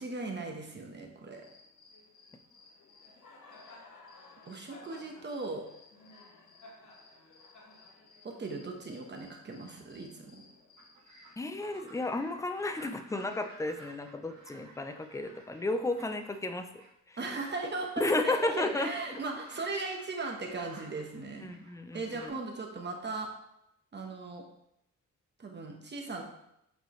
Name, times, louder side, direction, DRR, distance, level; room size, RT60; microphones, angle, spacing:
voice 1, 0.0-1.4 4.5-5.6 8.2-10.4 17.2-21.5 21.9-23.3 23.9-24.4 25.4-26.2, right 3 dB, 35° right, 2 dB, 1.1 m, -38 dB
Cricket, 1.3-11.3, left 3 dB, 75° left, 1.5 m, -56 dB
sound 1, 10.8-16.9 17.2-22.3, right 2 dB, 65° right, 1.6 m, -55 dB
voice 2, 11.4-16.7 17.1-17.2 18.0-19.2 21.4-22.3, left 2 dB, 10° left, 8 dB, 0.5 m, -33 dB
8.0 x 4.8 x 3.1 m, 0.79 s
cardioid pair, 115°, 30 cm